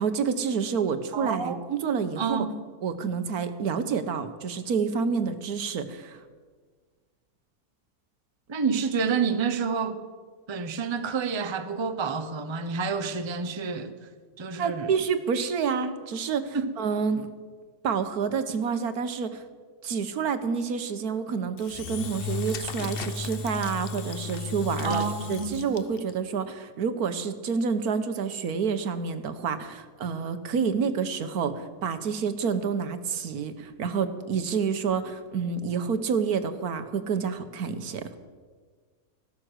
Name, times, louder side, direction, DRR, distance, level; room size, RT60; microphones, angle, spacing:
voice 1, 0.0-2.5 2.8-6.2 14.6-17.3 17.8-19.4 19.8-25.0 25.3-38.2, right 6 dB, 70° right, 1.4 m, -28 dB
voice 2, 1.1-2.6 8.5-10.0 10.5-14.0 14.4-14.9 16.5-16.7 24.8-25.8, right 5 dB, 25° right, 0.6 m, -29 dB
Engine / Drill, 21.6-26.1, left 5 dB, 50° left, 0.8 m, -34 dB
15.5 x 12.5 x 6.4 m
omnidirectional pair, 1.7 m